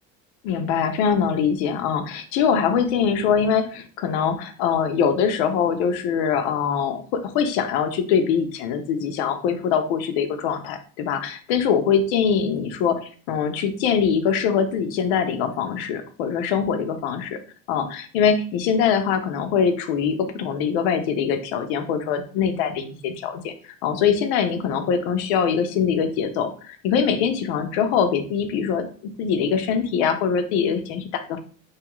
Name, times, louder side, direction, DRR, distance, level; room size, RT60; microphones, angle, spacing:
voice 1, 0.4-13.0 13.3-17.4 17.7-31.4, left 7 dB, 80° left, 8 dB, 0.6 m, -23 dB
2.8 x 2.4 x 3.0 m, 0.42 s
cardioid pair, 135°, 32 cm